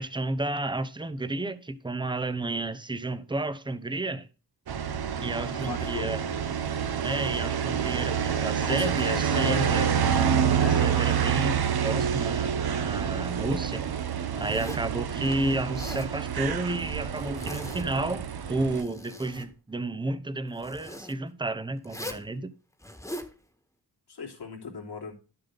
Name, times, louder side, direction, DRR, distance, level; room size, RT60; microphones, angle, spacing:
voice 1, 0.0-4.3 5.2-6.2 7.0-9.9 10.6-11.6 11.8-13.9 14.4-22.5, right 2 dB, 10° right, 0.8 m, -31 dB
sound 1, 4.7-18.8, right 8 dB, 65° right, 1.0 m, -27 dB
voice 2, 5.5-6.1 8.6-9.8 10.6-10.8 11.2-11.3 24.1-25.1, left 5 dB, 80° left, 3.2 m, -37 dB
Zipper (clothing), 14.4-14.9 15.6-16.1 17.1-18.0 18.5-19.5 20.6-21.1 21.8-22.3 22.8-23.3, left 1 dB, 5° left, 1.6 m, -41 dB
12.0 x 6.8 x 4.0 m
wide cardioid pair, 135°, 40 cm